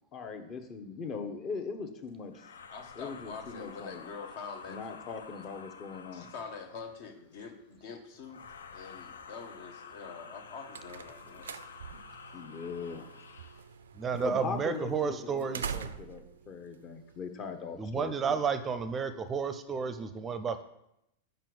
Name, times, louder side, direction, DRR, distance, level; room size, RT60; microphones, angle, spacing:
voice 1, 0.1-2.5 3.0-4.1 4.7-6.3 11.9-12.0 12.3-13.1 14.1-18.4, left 5 dB, 35° left, 7 dB, 0.9 m, -40 dB
sound 1, 2.3-6.9 8.2-13.7, left 6 dB, 85° left, 0.4 m, -50 dB
voice 2, 2.7-4.8 6.1-8.4 8.7-11.6, left 5 dB, 60° left, 5 dB, 1.0 m, -45 dB
sound 2, 10.2-17.7, right 7 dB, 85° right, 0.3 m, -45 dB
voice 3, 13.9-15.8 17.7-20.6, right 6 dB, 25° right, 11 dB, 0.5 m, -32 dB
5.1 x 4.5 x 6.0 m, 0.83 s
hypercardioid pair, 105°, 0 cm